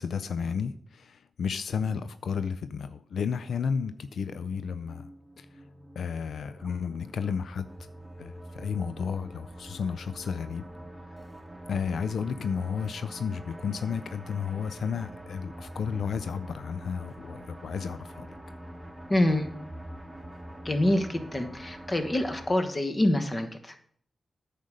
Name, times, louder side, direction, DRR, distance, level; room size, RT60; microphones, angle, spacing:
voice 1, 0.0-5.1 5.4-5.5 6.0-7.7 8.2-10.6 11.7-18.3, left 6 dB, 85° left, 0.4 m, -32 dB
sound 1, 3.6-22.5, right 1 dB, 5° right, 1.5 m, -45 dB
voice 2, 19.1-19.5 20.6-23.7, left 1 dB, 30° left, 1.2 m, -26 dB
9.3 x 5.1 x 6.5 m
cardioid pair, 85°, 0 cm